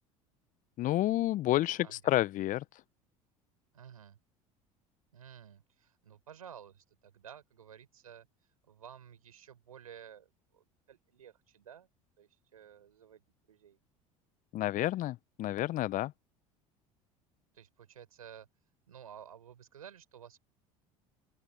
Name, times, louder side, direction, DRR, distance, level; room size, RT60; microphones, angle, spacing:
voice 1, 0.8-2.6 14.5-16.1, left 15 dB, 45° left, 1.1 m, -30 dB
voice 2, 1.8-2.2 3.7-4.2 5.1-8.3 8.6-11.9 12.2-13.8 17.5-18.5 18.9-20.4, right 9 dB, 80° right, 5.5 m, -53 dB
open air
figure-of-eight pair, 70°, 18 cm